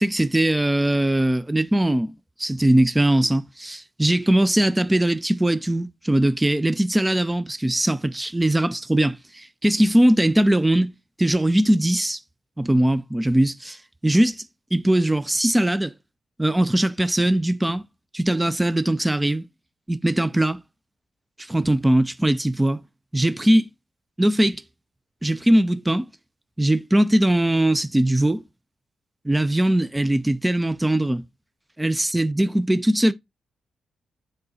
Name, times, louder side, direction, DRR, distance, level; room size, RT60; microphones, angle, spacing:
voice 1, 0.0-2.1 2.4-10.9 11.2-12.2 12.6-14.5 14.7-15.9 16.4-17.8 18.1-19.5 19.9-20.6 21.4-22.8 23.1-23.7 24.2-24.6 25.2-26.1 26.6-28.4 29.2-31.2 31.8-33.1, right 1 dB, 15° right, 0.6 m, -20 dB
7.6 x 3.9 x 4.2 m
supercardioid pair, 55°, 0 cm